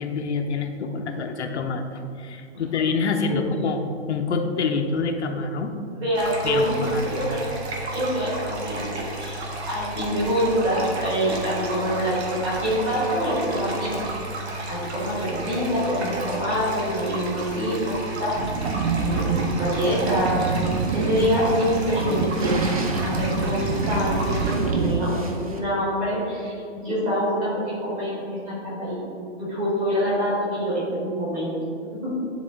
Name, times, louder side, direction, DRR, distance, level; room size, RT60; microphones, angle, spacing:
voice 1, 0.0-5.7 6.4-7.2, left 4 dB, 65° left, 4 dB, 0.7 m, -26 dB
voice 2, 5.9-6.7 7.1-7.4 7.9-14.0 14.7-18.6 18.9-20.5 20.9-22.7 22.9-29.0 29.3-31.6 31.9-32.1, equal, 15° right, -8 dB, 1.5 m, -25 dB
sound 1, 6.1-24.6, right 1 dB, 60° right, 1.3 m, -33 dB
sound 2, 18.4-25.0, right 4 dB, 85° right, 0.7 m, -26 dB
sound 3, 19.8-25.6, right 2 dB, 30° right, 0.5 m, -40 dB
10.5 x 3.6 x 3.8 m, 2.5 s
hypercardioid pair, 175°, 36 cm